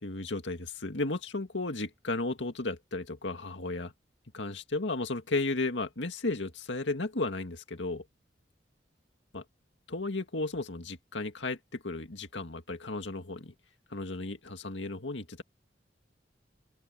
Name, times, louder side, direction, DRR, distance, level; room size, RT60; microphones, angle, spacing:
voice 1, 0.0-3.9 4.3-8.0 9.3-9.4 9.9-13.5 13.9-15.4, left 2 dB, 75° left, 2.1 m, -34 dB
open air
head